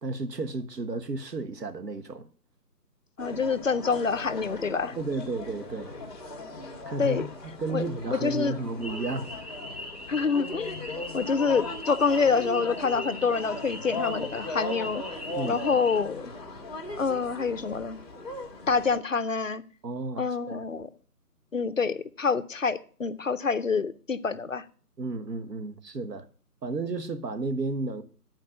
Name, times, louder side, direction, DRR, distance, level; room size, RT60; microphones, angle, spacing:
voice 1, 0.0-2.3 5.0-6.0 6.8-9.3 15.3-15.6 19.8-20.6 25.0-26.3 26.6-28.0, right 3 dB, 85° right, 1.4 m, -33 dB
voice 2, 3.2-5.0 7.0-7.3 7.7-8.6 10.1-15.0 15.4-16.3 17.0-18.0 18.7-19.6 20.2-20.9 21.5-24.6, left 5 dB, 55° left, 0.6 m, -27 dB
sound 1, 3.2-19.0, left 2 dB, 25° left, 1.7 m, -38 dB
sound 2, 8.8-16.0, left 1 dB, 25° right, 0.8 m, -41 dB
10.5 x 4.6 x 7.8 m
hypercardioid pair, 175°, 48 cm